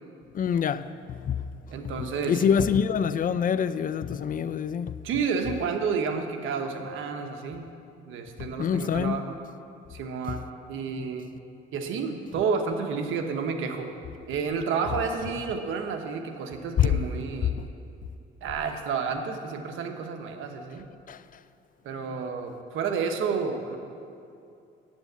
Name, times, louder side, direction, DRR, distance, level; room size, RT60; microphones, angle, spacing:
voice 1, 0.3-1.5 2.0-5.0 8.4-9.2 16.8-17.0 17.5-17.7 21.1-21.2, left 8 dB, 45° left, 0.4 m, -26 dB
voice 2, 1.7-2.5 5.0-7.7 8.1-9.4 9.9-11.3 11.7-13.9 14.3-17.5 18.4-20.8 21.8-23.8, right 5 dB, 85° right, 1.1 m, -30 dB
9.5 x 8.3 x 8.0 m
cardioid pair, 90°, 20 cm